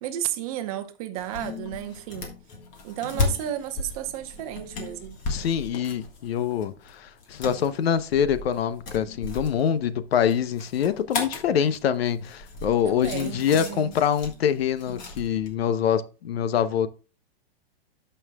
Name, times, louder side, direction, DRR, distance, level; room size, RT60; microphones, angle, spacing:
voice 1, 0.0-2.3 2.8-5.2 12.8-14.0, right 11 dB, 35° right, 0.8 m, -33 dB
sound 1, 1.2-15.5, left 3 dB, 25° left, 1.5 m, -35 dB
voice 2, 5.3-16.9, left 8 dB, 75° left, 0.8 m, -25 dB
12.5 x 5.6 x 2.3 m
supercardioid pair, 160°, 31 cm